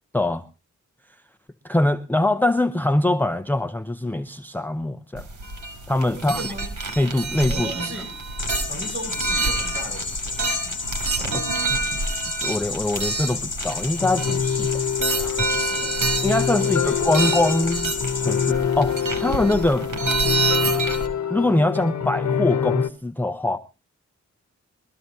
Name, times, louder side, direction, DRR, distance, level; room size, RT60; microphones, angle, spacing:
voice 1, 0.1-0.4 1.6-5.3 5.9-6.4 7.0-7.7 11.2-14.7 15.2-15.5 16.2-19.9 21.3-23.6, left 1 dB, 5° left, 0.6 m, -23 dB
sound 1, 5.2-21.1, right 3 dB, 85° right, 2.8 m, -28 dB
voice 2, 6.1-6.7 7.5-8.2 8.7-10.8 15.4-16.0 16.5-17.4, right 1 dB, 40° right, 6.3 m, -36 dB
sound 2, 8.4-18.5, left 4 dB, 40° left, 1.0 m, -32 dB
sound 3, 14.0-22.9, left 8 dB, 65° left, 1.0 m, -25 dB
21.5 x 14.0 x 2.7 m
wide cardioid pair, 90°, 30 cm